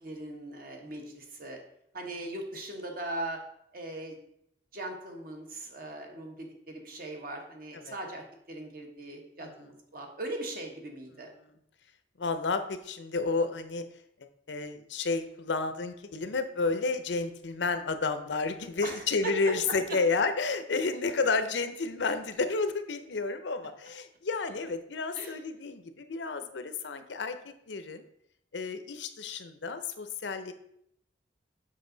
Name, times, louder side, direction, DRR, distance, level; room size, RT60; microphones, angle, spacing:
voice 1, 0.0-1.6 1.9-3.4 3.7-4.2 4.7-11.3 18.8-19.8 25.1-25.4, right 1 dB, 55° right, 2 dB, 1.3 m, -39 dB
voice 2, 12.2-13.9 14.5-28.1 28.5-30.5, left 4 dB, 85° left, 10 dB, 0.6 m, -31 dB
7.4 x 5.3 x 3.9 m, 0.74 s
head